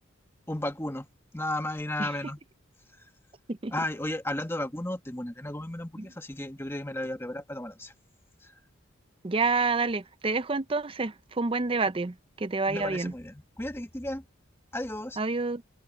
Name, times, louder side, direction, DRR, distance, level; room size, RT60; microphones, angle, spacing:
voice 1, 0.5-1.1 1.3-2.4 3.7-7.9 8.4-8.5 12.7-14.2 14.7-15.2, left 1 dB, 10° left, 1.4 m, -34 dB
voice 2, 9.2-13.1 15.2-15.6, right 3 dB, 25° right, 0.5 m, -28 dB
head